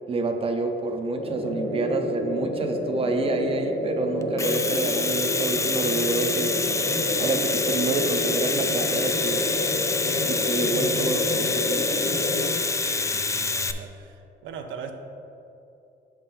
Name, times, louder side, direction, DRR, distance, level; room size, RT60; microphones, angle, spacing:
voice 1, 0.1-6.6 7.2-9.5 10.0-12.0, right 3 dB, 30° right, 5 dB, 0.6 m, -28 dB
sound 1, 1.1-12.5, left 1 dB, 40° left, 1.1 m, -29 dB
Domestic sounds home sounds, 4.2-13.7, left 3 dB, 15° left, 0.3 m, -27 dB
voice 2, 12.7-14.9, right 6 dB, 80° right, 5 dB, 0.6 m, -40 dB
6.6 x 5.8 x 3.8 m, 2.7 s
cardioid pair, 90°, 20 cm